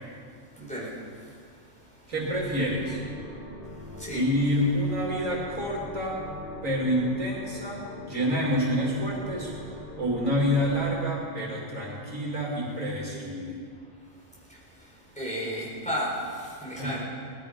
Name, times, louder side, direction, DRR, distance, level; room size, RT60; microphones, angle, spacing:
voice 1, 0.6-1.0 3.9-4.2 14.5-17.0, equal, 5° left, -6 dB, 4.4 m, -34 dB
voice 2, 2.1-3.0 4.1-6.2 6.6-9.5 10.0-13.6 16.7-17.0, equal, 80° right, -3 dB, 3.1 m, -28 dB
sound 1, 2.2-10.9, left 1 dB, 25° right, 3.2 m, -42 dB
19.0 x 12.5 x 5.2 m, 2.2 s
omnidirectional pair, 1.4 m